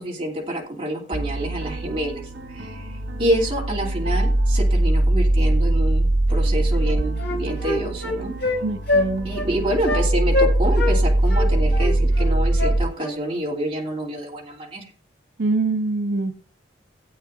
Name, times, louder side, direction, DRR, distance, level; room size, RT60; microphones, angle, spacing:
voice 1, 0.0-2.2 2.5-2.9 3.2-8.3 9.2-14.8, right 1 dB, 30° right, -3 dB, 2.8 m, -27 dB
sound 1, 1.1-12.8, right 1 dB, 85° right, 1.8 m, -22 dB
Wind instrument woodwind instrument, 6.4-6.5 6.8-8.6 8.9-9.1 9.3-9.5 9.8-10.0 10.3-11.0 11.3-13.2, left 2 dB, 55° left, 3.5 m, -24 dB
voice 2, 8.6-9.3 15.4-16.4, right 3 dB, 65° right, 8 dB, 0.5 m, -24 dB
16.5 x 8.5 x 2.6 m, 0.43 s
head